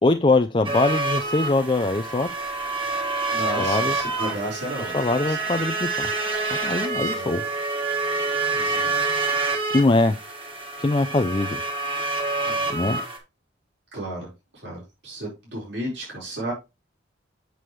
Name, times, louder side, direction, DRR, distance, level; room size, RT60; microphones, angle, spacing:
voice 1, 0.0-2.3 3.6-4.0 4.9-6.1 6.6-7.4 9.7-10.2 10.8-11.6 12.7-13.0, left 2 dB, 25° left, 7 dB, 0.4 m, -22 dB
sound 1, 0.6-13.2, right 3 dB, 25° right, 1.7 m, -27 dB
voice 2, 3.3-4.9 5.3-5.4 6.9-7.3 8.5-9.1 12.5-12.9 13.9-14.3 14.6-16.5, right 1 dB, 70° right, -4 dB, 4.6 m, -33 dB
7.6 x 6.9 x 3.1 m, 0.24 s
head